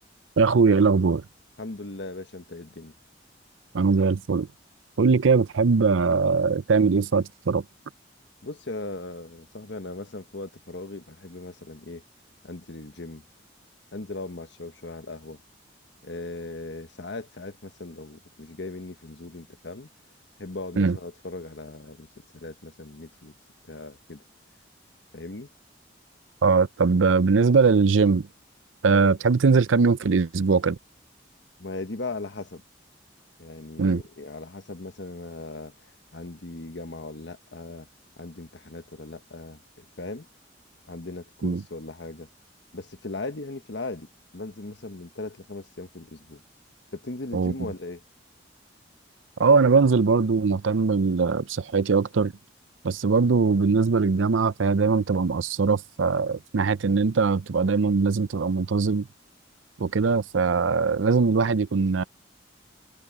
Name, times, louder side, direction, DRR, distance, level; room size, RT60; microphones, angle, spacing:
voice 1, 0.4-1.2 3.7-4.5 5.0-7.6 20.8-21.0 26.4-28.3 28.8-30.8 33.8-34.0 41.4-41.6 47.3-47.5 49.4-52.3 52.8-59.1 59.8-62.0, right 4 dB, 90° right, 0.6 m, -21 dB
voice 2, 1.6-2.9 8.4-12.0 12.4-13.2 13.9-15.4 16.0-19.9 20.4-22.1 22.3-23.3 23.7-24.2 25.1-25.5 28.9-29.1 31.6-32.6 33.4-37.9 38.2-40.3 40.9-42.3 42.7-46.4 46.9-48.0, left 2 dB, 65° left, 1.2 m, -38 dB
head